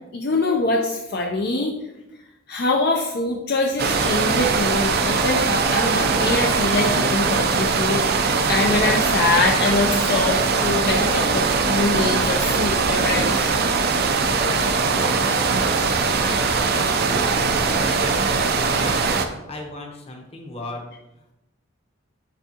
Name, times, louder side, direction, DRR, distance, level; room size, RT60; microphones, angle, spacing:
voice 1, 0.1-1.7 2.5-13.5, left 2 dB, 50° left, 0 dB, 0.5 m, -24 dB
sound 1, 3.8-19.3, right 4 dB, 50° right, 0.5 m, -21 dB
voice 2, 14.8-15.7 16.2-17.5 17.7-20.9, left 1 dB, 30° left, 2 dB, 0.9 m, -36 dB
10.0 x 3.5 x 2.9 m, 0.95 s
head